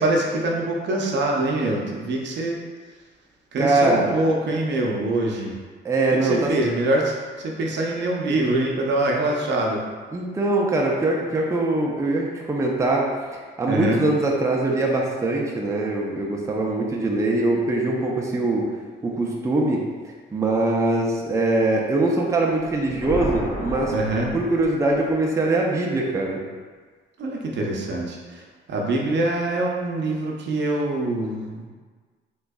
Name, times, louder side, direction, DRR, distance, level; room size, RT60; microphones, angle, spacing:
voice 1, 0.0-2.6 3.5-5.5 6.2-9.8 13.7-14.0 23.9-24.3 27.2-31.7, right 2 dB, 65° right, 0 dB, 0.6 m, -24 dB
voice 2, 3.6-4.1 5.8-6.5 10.1-13.1 13.6-18.6 19.0-19.8 20.3-23.9 24.3-26.4, right 2 dB, 15° right, -2 dB, 0.4 m, -22 dB
sound 1, 22.6-25.2, equal, 45° left, 1.3 m, -32 dB
3.4 x 3.1 x 2.2 m, 1.5 s
cardioid pair, 90°, 20 cm